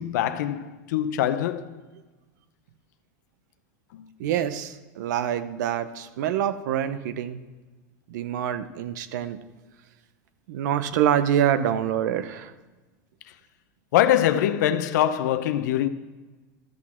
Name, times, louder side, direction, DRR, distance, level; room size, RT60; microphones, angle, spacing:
voice 1, 0.0-1.8 3.9-4.1 13.9-15.9, left 11 dB, 75° left, 0.7 m, -23 dB
voice 2, 4.2-7.4 8.1-9.4 10.5-12.5, right 10 dB, 75° right, 0.7 m, -26 dB
13.0 x 6.2 x 4.4 m
supercardioid pair, 120°, 10 cm